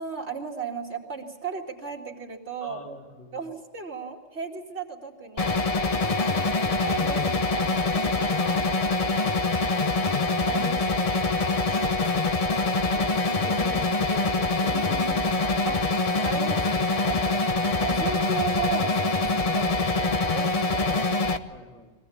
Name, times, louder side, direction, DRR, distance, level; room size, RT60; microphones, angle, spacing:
voice 1, 0.0-2.8 3.3-5.7 6.1-9.3 10.4-12.3 14.7-15.2 15.6-15.8 16.2-17.4 17.8-21.0, right 6 dB, 70° right, -2 dB, 2.7 m, -36 dB
voice 2, 2.6-3.5 12.9-15.2 21.5-21.9, equal, 10° left, 1 dB, 2.5 m, -43 dB
sound 1, 5.4-21.4, left 3 dB, 35° left, 0.9 m, -24 dB
23.5 x 16.0 x 8.5 m, 1.5 s
omnidirectional pair, 1.2 m